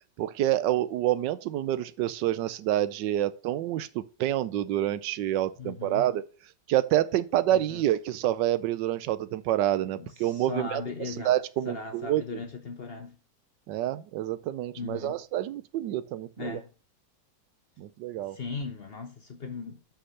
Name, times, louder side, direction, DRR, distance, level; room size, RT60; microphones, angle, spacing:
voice 1, 0.2-6.2 6.7-10.8 11.2-12.4 13.7-16.6 17.8-18.4, right 13 dB, 80° right, 1.3 m, -28 dB
voice 2, 5.6-6.1 7.5-7.8 10.0-11.4 11.6-13.2 14.8-15.2 16.4-16.7 18.2-19.9, left 4 dB, 50° left, 0.8 m, -38 dB
6.3 x 5.8 x 5.6 m
omnidirectional pair, 1.9 m